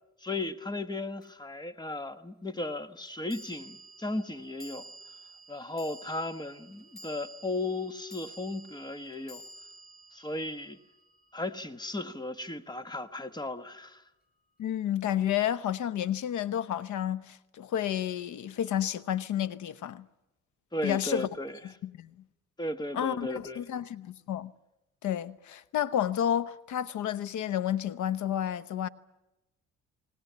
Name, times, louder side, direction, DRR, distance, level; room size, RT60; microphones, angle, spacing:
voice 1, 0.2-4.8 5.5-9.4 10.1-10.8 11.3-14.0 20.7-21.6 22.6-23.6, left 2 dB, 15° left, 1.2 m, -35 dB
sound 1, 1.2-1.3 3.3-11.7, right 1 dB, 30° left, 5.8 m, -51 dB
voice 2, 14.6-20.0 20.8-21.3 21.8-22.1 22.9-24.5 25.0-28.9, left 10 dB, 80° left, 1.0 m, -31 dB
20.5 x 19.5 x 9.4 m
cardioid pair, 100°, 29 cm